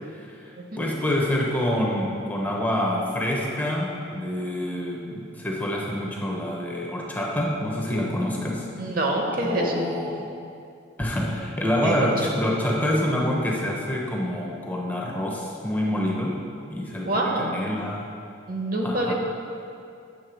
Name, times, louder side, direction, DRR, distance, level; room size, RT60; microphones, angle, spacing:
voice 1, 0.8-8.7 9.4-10.3 11.0-16.4 16.7-18.1 18.8-19.1, left 1 dB, 10° left, -2 dB, 0.6 m, -26 dB
voice 2, 8.8-9.7 11.8-12.1 17.0-17.5 18.5-19.1, right 2 dB, 45° right, 1 dB, 0.8 m, -26 dB
8.4 x 3.6 x 6.1 m, 2.5 s
head